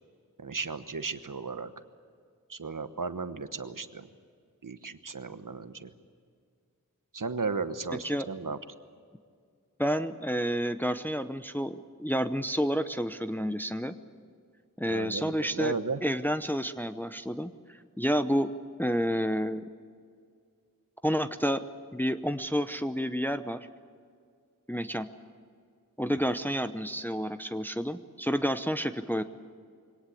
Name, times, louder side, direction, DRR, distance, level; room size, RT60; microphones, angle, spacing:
voice 1, 0.4-1.7 2.5-4.1 4.6-5.9 7.1-8.6 14.8-16.0 26.1-26.2, right 4 dB, 70° right, 10 dB, 1.2 m, -35 dB
voice 2, 9.8-13.9 14.8-15.7 16.0-18.5 18.8-19.6 21.0-21.6 21.9-23.6 24.7-25.1 26.0-29.2, equal, 5° left, 9 dB, 0.8 m, -30 dB
23.5 x 18.5 x 8.5 m, 2.2 s
wide cardioid pair, 40°, 33 cm